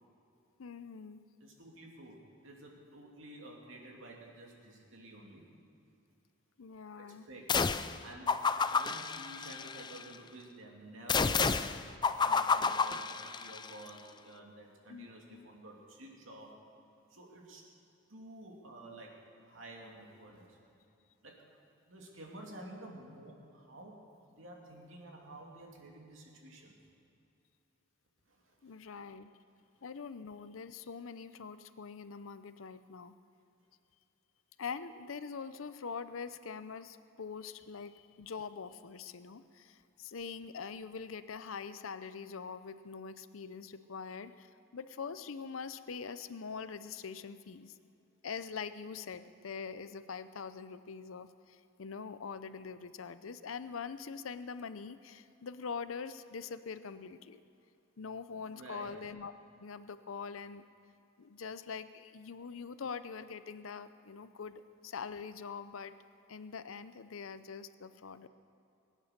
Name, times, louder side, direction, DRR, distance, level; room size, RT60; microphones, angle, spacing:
voice 1, 0.6-1.2 6.6-7.3 14.9-15.5 28.6-29.3 29.8-33.1 34.6-47.8 48.2-57.4 58.0-59.3 59.6-60.6 61.2-65.9 66.3-68.3, left 5 dB, 85° left, 13 dB, 0.6 m, -44 dB
voice 2, 1.4-5.4 7.0-7.5 8.0-8.4 8.7-11.7 12.2-16.5 17.1-17.6 18.1-19.2 19.4-20.6 21.2-21.4 21.9-26.7 28.3-28.8 58.4-58.9, right 1 dB, 75° right, -1 dB, 2.8 m, -51 dB
sound 1, 7.5-8.0 8.3-10.0 11.1-13.7, left 5 dB, 20° left, 0.4 m, -30 dB
21.5 x 9.7 x 6.7 m, 2.7 s
head